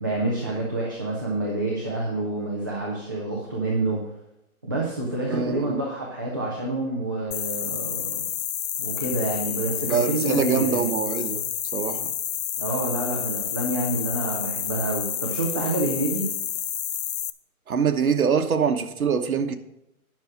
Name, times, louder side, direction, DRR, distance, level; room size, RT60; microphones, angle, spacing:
voice 1, 0.0-4.0 4.6-8.3 8.8-10.8 12.6-16.3, right 2 dB, 15° right, 0.6 m, -28 dB
voice 2, 5.3-5.8 9.8-11.4 11.7-12.1 17.7-19.6, right 6 dB, 70° right, 1.2 m, -24 dB
sound 1, 7.3-17.3, left 10 dB, 70° left, 0.7 m, -30 dB
10.5 x 6.2 x 6.4 m
hypercardioid pair, 165°, 44 cm